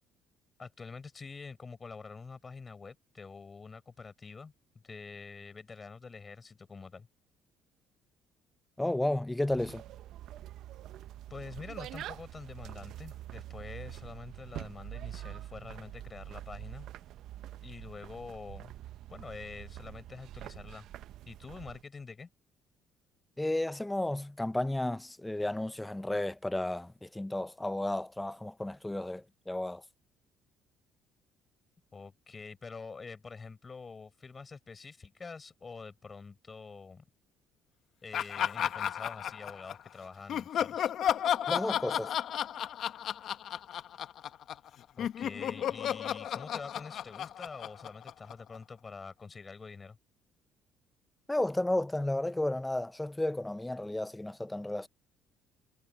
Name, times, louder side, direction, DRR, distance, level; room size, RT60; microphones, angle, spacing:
voice 1, 0.6-7.1 11.3-16.9 17.6-18.7 19.1-20.9 21.3-22.3 31.9-37.0 38.0-40.9 45.0-50.0, left 4 dB, 30° left, 6.9 m, -46 dB
voice 2, 8.8-9.8 23.4-29.8 41.5-42.1 51.3-54.9, left 1 dB, 10° left, 0.6 m, -33 dB
sound 1, 9.5-21.8, right 13 dB, 70° right, 0.7 m, -45 dB
Laughter, 38.1-39.9 40.3-44.7 45.0-48.6, left 10 dB, 60° left, 1.0 m, -33 dB
supercardioid pair, 90°, 0 cm